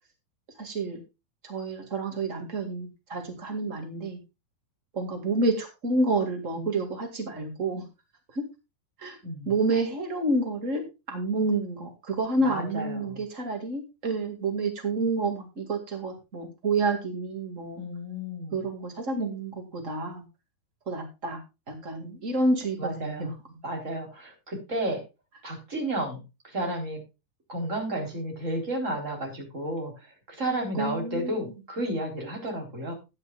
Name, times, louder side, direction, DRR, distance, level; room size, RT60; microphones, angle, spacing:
voice 1, 0.6-1.0 1.4-4.2 4.9-7.8 8.3-8.4 9.0-9.2 9.4-17.8 18.5-20.2 20.8-21.4 21.7-23.3 30.7-31.4, right 2 dB, 60° right, 4 dB, 0.7 m, -29 dB
voice 2, 12.4-13.2 17.7-18.6 22.8-23.3 23.6-25.0 25.4-27.0 27.5-32.9, right 1 dB, 15° right, 1 dB, 3.6 m, -32 dB
15.0 x 9.7 x 2.4 m, 0.26 s
omnidirectional pair, 5.3 m